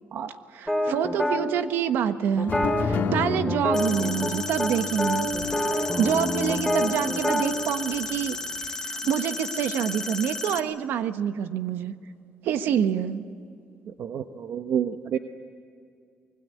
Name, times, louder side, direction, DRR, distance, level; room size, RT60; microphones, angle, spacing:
voice 1, 0.5-2.5 2.8-5.3 5.7-8.4 8.8-11.9 12.4-13.2, right 8 dB, 80° right, 10 dB, 1.3 m, -26 dB
sound 1, 0.7-1.4 2.4-4.3 4.6-4.7 5.0-7.5, equal, ahead, 3.9 m, -27 dB
sound 2, 2.5-8.6, left 6 dB, 70° left, 2.7 m, -34 dB
sound 3, 3.7-10.6, left 2 dB, 15° left, 1.9 m, -34 dB
voice 2, 14.5-15.2, right 9 dB, 65° right, 8 dB, 1.0 m, -28 dB
25.0 x 20.5 x 9.4 m, 2.4 s
cardioid pair, 100°, 4 cm